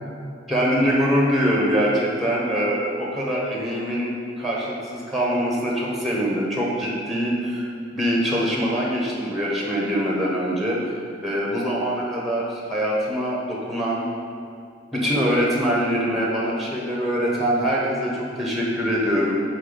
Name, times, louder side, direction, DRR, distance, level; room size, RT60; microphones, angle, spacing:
voice 1, 0.5-4.1 4.4-10.8 11.2-14.1 14.9-19.4, equal, ahead, -4 dB, 0.9 m, -23 dB
5.4 x 4.5 x 5.1 m, 2.3 s
head